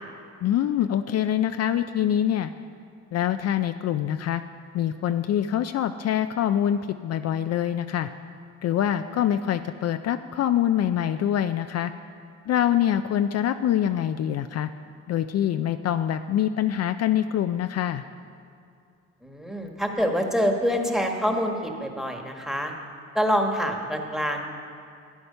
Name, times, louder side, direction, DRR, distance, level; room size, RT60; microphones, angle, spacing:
voice 1, 0.4-2.5 3.1-4.4 4.7-8.1 8.6-11.9 12.5-14.7 15.1-18.0, left 10 dB, 55° left, 9 dB, 0.4 m, -25 dB
voice 2, 19.2-22.7 23.1-24.4, equal, ahead, 3 dB, 1.4 m, -26 dB
12.5 x 9.3 x 5.5 m, 2.4 s
cardioid pair, 90°, 30 cm